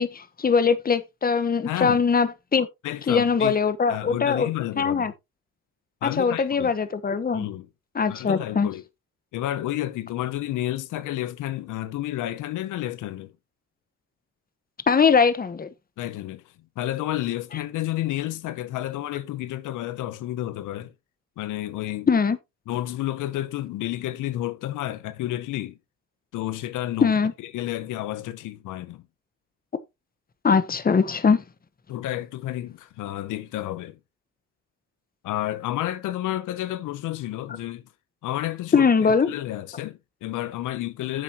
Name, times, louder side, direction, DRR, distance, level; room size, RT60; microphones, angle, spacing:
voice 1, 0.0-2.7 3.1-4.5 4.8-5.1 6.0-7.5 7.9-8.7 14.9-15.7 22.1-22.4 27.0-27.3 30.4-31.4 38.7-39.3, left 5 dB, 30° left, 1.2 m, -21 dB
voice 2, 1.6-2.0 2.8-3.6 3.9-5.1 6.0-6.7 7.3-7.7 8.1-8.8 9.3-13.3 16.0-16.4 16.8-20.9 21.4-22.1 22.7-25.8 26.3-27.1 27.5-29.0 31.9-34.0 35.2-37.8 38.2-41.2, left 14 dB, 85° left, 0.9 m, -30 dB
10.0 x 7.6 x 3.0 m
cardioid pair, 90°, 30 cm